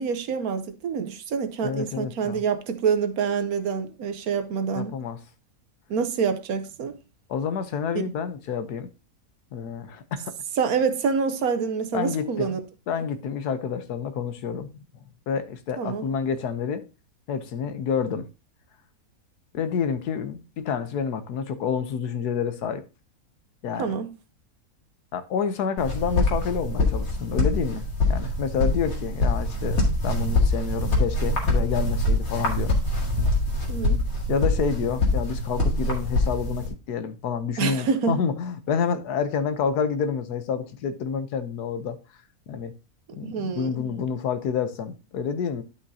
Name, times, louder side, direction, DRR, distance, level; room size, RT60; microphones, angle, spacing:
voice 1, 0.0-4.9 5.9-7.0 7.9-8.1 10.6-12.6 15.8-16.0 23.8-24.1 33.7-34.0 37.6-38.2 43.2-43.9, right 6 dB, 70° right, 1.3 m, -26 dB
voice 2, 1.6-2.4 4.7-5.2 7.3-8.9 9.5-10.3 11.9-12.6 12.9-14.8 15.3-16.8 17.3-18.3 19.5-22.8 23.6-23.9 25.1-32.7 34.3-42.0 42.5-42.7 43.1-45.6, left 6 dB, 90° left, 1.4 m, -28 dB
sound 1, 25.8-36.7, left 2 dB, 65° left, 2.5 m, -24 dB
11.5 x 5.5 x 2.7 m
omnidirectional pair, 1.6 m